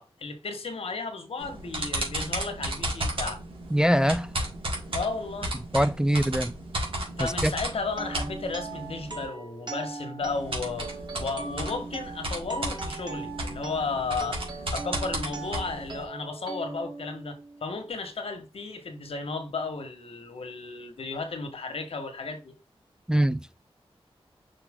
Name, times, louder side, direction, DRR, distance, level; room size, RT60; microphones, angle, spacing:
voice 1, 0.0-3.4 4.9-5.5 7.2-10.9 11.2-22.5, left 4 dB, 75° left, 1.5 m, -34 dB
sound 1, 1.4-9.2 10.2-16.0, right 1 dB, 65° right, 2.8 m, -34 dB
voice 2, 3.7-4.3 5.7-6.5 7.2-7.5 23.1-23.6, equal, 5° right, 0.3 m, -23 dB
sound 2, 7.9-17.8, right 3 dB, 50° right, 1.6 m, -40 dB
5.7 x 5.0 x 3.7 m
wide cardioid pair, 95°, 10 cm